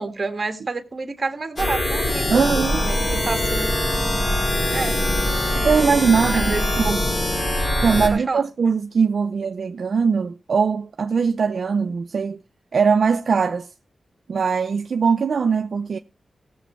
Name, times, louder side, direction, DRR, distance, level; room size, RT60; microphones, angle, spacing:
voice 1, 0.0-3.7 4.7-5.0 6.3-6.7 8.1-8.4, right 3 dB, 40° right, 1.6 m, -29 dB
sound 1, 1.6-8.1, left 1 dB, 40° left, 5.4 m, -22 dB
voice 2, 2.3-2.8 5.5-7.0 7.8-12.4 12.7-13.7 14.3-16.0, right 5 dB, 65° right, 0.6 m, -21 dB
17.0 x 7.1 x 4.4 m
wide cardioid pair, 90°, 0 cm